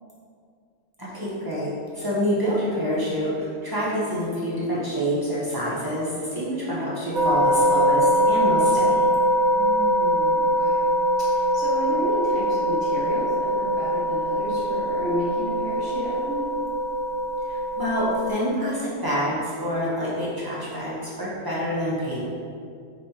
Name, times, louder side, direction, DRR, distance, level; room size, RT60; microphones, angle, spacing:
voice 1, 1.0-1.7 1.9-9.1 17.5-22.3, equal, 20° right, -9 dB, 0.7 m, -27 dB
sound 1, 7.1-18.3, equal, 90° right, 0.4 m, -22 dB
voice 2, 9.5-10.9 11.2-16.5, right 1 dB, 65° left, -15 dB, 1.7 m, -32 dB
5.2 x 3.3 x 2.8 m, 2.3 s
omnidirectional pair, 1.3 m